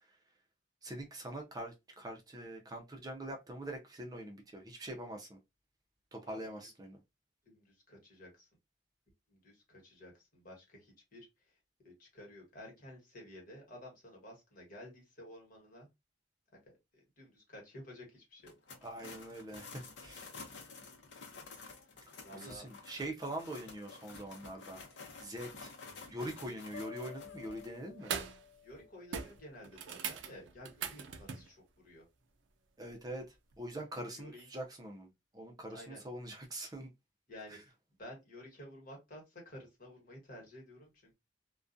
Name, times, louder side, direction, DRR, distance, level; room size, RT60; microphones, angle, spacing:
voice 1, 0.8-5.4 6.1-7.0 18.8-20.3 22.3-24.8 25.2-25.7 26.1-28.2 32.8-36.9 37.5-37.6, right 1 dB, 20° right, 0.5 m, -44 dB
voice 2, 7.5-8.5 9.3-11.3 11.8-15.9 16.9-18.6 21.8-21.9 22.2-22.7 28.6-32.0 34.1-34.5 35.7-36.0 37.3-37.7 38.0-41.1, left 1 dB, 45° left, 1.3 m, -52 dB
sound 1, 18.4-27.7, left 4 dB, 70° left, 0.7 m, -51 dB
sound 2, 26.7-29.8, left 10 dB, 85° left, 0.3 m, -53 dB
sound 3, 27.2-27.6 28.0-28.4 28.7-28.8 29.1-31.5 33.5-33.6, right 7 dB, 75° right, 0.4 m, -41 dB
2.4 x 2.2 x 2.5 m
head